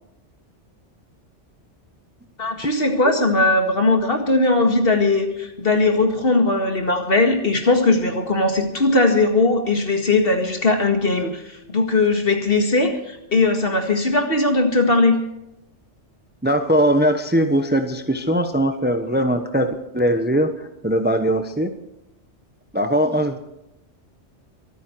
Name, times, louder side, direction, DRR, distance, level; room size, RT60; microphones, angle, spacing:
voice 1, 2.4-15.2, left 2 dB, 50° left, 5 dB, 2.2 m, -19 dB
voice 2, 16.4-21.7 22.7-23.4, equal, 10° right, 7 dB, 0.9 m, -20 dB
24.5 x 9.3 x 4.6 m, 0.88 s
omnidirectional pair, 1.2 m